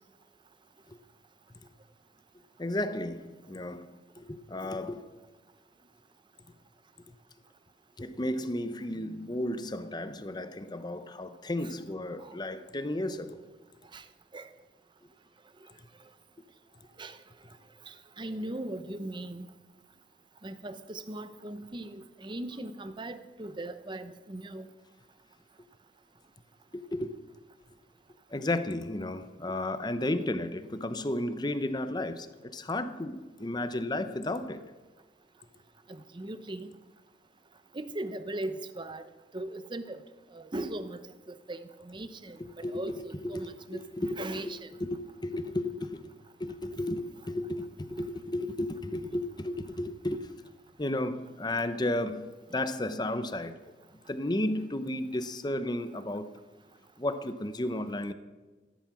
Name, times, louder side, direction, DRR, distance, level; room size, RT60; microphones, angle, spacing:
voice 1, 2.6-5.1 7.1-7.2 8.0-13.4 26.7-27.1 28.3-34.7 42.4-44.5 44.8-46.1 46.4-50.3 50.8-53.6 54.1-56.4 57.0-58.1, left 1 dB, 25° left, 0.8 m, -33 dB
voice 2, 17.9-19.5 20.4-24.7 35.9-36.7 37.7-40.0 40.3-41.0 41.3-44.7, right 1 dB, 25° right, 0.8 m, -39 dB
14.5 x 13.0 x 6.2 m
head